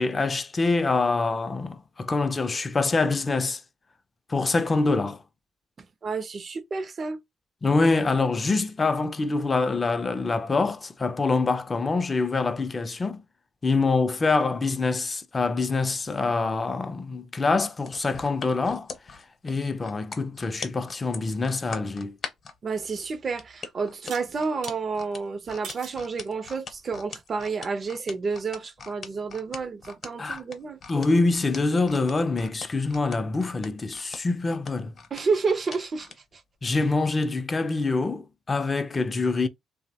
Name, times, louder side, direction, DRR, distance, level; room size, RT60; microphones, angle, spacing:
voice 1, 0.0-3.6 4.3-5.2 7.6-13.2 13.6-18.9 19.4-22.2 30.2-30.4 30.9-34.9 36.6-39.5, left 3 dB, 30° left, 0.4 m, -25 dB
voice 2, 6.0-7.2 22.6-30.8 35.1-36.1, right 4 dB, 40° right, 0.4 m, -30 dB
sound 1, 17.8-22.6 23.4-36.2 36.6-36.8, left 5 dB, 50° left, 0.7 m, -41 dB
sound 2, 22.7-22.8 24.1-24.8 25.6-26.0 26.7-27.1, right 6 dB, 85° right, 0.6 m, -42 dB
2.8 x 2.0 x 2.7 m
cardioid pair, 90°, 0 cm